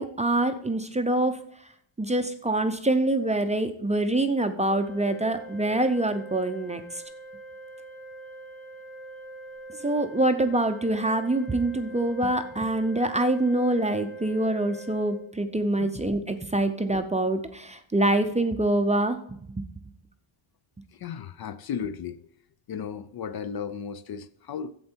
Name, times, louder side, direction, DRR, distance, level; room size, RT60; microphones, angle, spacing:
voice 1, 0.0-1.4 2.0-7.0 9.7-19.2 19.6-19.7, right 1 dB, 15° right, 0.5 m, -25 dB
Organ, 4.7-15.7, right 2 dB, 15° left, 1.6 m, -44 dB
voice 2, 20.9-22.2 22.7-24.7, left 7 dB, 50° left, 0.5 m, -35 dB
11.0 x 7.8 x 4.4 m
wide cardioid pair, 135°, 49 cm